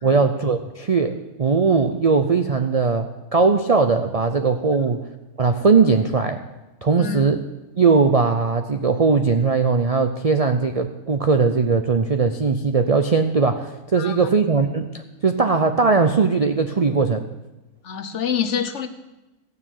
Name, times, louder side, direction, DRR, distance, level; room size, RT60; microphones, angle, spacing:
voice 1, 0.0-5.0 5.4-6.4 6.8-7.4 7.8-17.2, right 4 dB, 65° right, 7 dB, 0.3 m, -19 dB
voice 2, 7.0-7.3 14.0-14.3 17.8-18.9, left 8 dB, 55° left, 9 dB, 1.1 m, -27 dB
15.0 x 6.7 x 9.0 m, 1.0 s
omnidirectional pair, 1.6 m